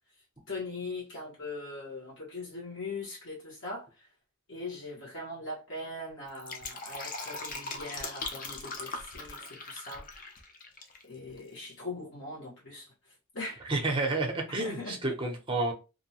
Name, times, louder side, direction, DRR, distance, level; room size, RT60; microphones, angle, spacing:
voice 1, 0.5-4.1 4.5-10.1 11.0-13.7 14.6-15.1, left 2 dB, 55° left, 1.0 m, -41 dB
Fill (with liquid), 6.2-11.0 11.3-11.4, left 3 dB, 40° left, 0.5 m, -40 dB
voice 2, 13.7-15.7, right 2 dB, 25° right, 0.6 m, -30 dB
2.6 x 2.1 x 2.7 m
head